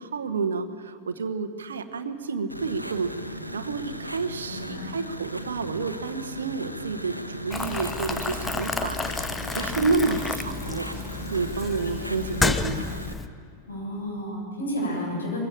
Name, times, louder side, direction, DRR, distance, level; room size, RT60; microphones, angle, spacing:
voice 1, 0.0-9.3 9.5-10.9 11.3-12.9, right 4 dB, 70° right, 9 dB, 1.1 m, -30 dB
sound 1, 2.5-13.1, equal, 90° right, 1.1 m, -37 dB
voice 2, 4.4-4.9 9.7-10.0 12.0-12.1 13.7-15.4, equal, 75° left, -2 dB, 7.6 m, -32 dB
Boiling, 7.5-13.3, left 3 dB, 10° left, 0.8 m, -30 dB
21.5 x 16.5 x 8.8 m, 2.2 s
figure-of-eight pair, 90°, 0 cm